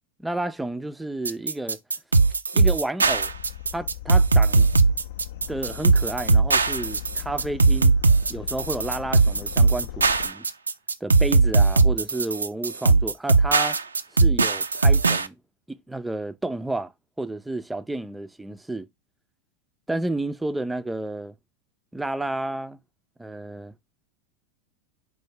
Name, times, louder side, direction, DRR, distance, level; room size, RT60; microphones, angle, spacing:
voice 1, 0.2-1.8 2.5-3.3 3.7-4.7 5.5-8.0 8.3-10.5 11.0-13.8 14.1-15.4 15.7-16.9 17.2-18.9 19.9-21.3 21.9-22.8 23.2-23.7, right 2 dB, 5° right, 0.3 m, -31 dB
sound 1, 1.2-15.3, right 3 dB, 80° right, 0.3 m, -19 dB
sound 2, 3.0-10.3, left 12 dB, 65° left, 0.4 m, -38 dB
4.9 x 2.1 x 4.7 m
figure-of-eight pair, 85°, 0 cm